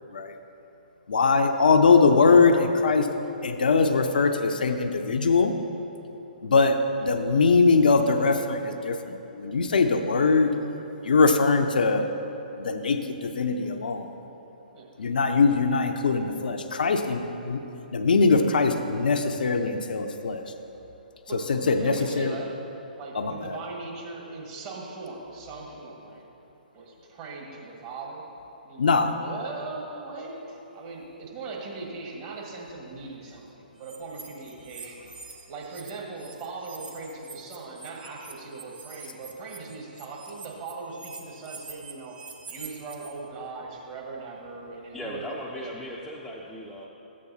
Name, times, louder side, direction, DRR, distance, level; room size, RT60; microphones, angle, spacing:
voice 1, 1.1-3.1 3.4-5.6 6.4-10.6 11.0-12.1 12.6-14.1 15.0-17.6 17.9-20.4 21.5-22.3 23.2-23.6 28.8-29.2, left 4 dB, 65° left, 6 dB, 0.6 m, -22 dB
voice 2, 21.3-22.6 22.9-26.3 26.7-28.2 28.6-33.4 33.8-35.1 35.5-42.2 42.5-46.0, right 3 dB, 35° right, -2 dB, 1.7 m, -39 dB
sound 1, 33.8-35.9 36.2-43.1, right 5 dB, 70° right, 1.1 m, -45 dB
voice 3, 44.9-46.9, equal, 5° left, -4 dB, 0.6 m, -37 dB
13.0 x 8.4 x 2.8 m, 3.0 s
figure-of-eight pair, 125°, 5 cm